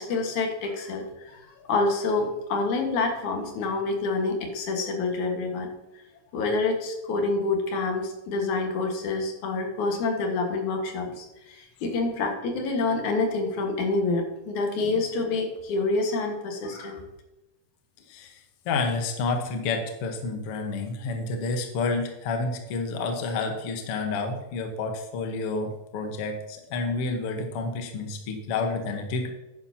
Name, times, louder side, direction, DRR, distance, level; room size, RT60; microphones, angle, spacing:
voice 1, 0.0-5.7 6.3-17.0, left 3 dB, 75° left, 3 dB, 3.0 m, -27 dB
voice 2, 18.1-29.3, left 3 dB, 60° left, 5 dB, 1.9 m, -29 dB
11.0 x 9.8 x 2.8 m, 1.0 s
omnidirectional pair, 3.4 m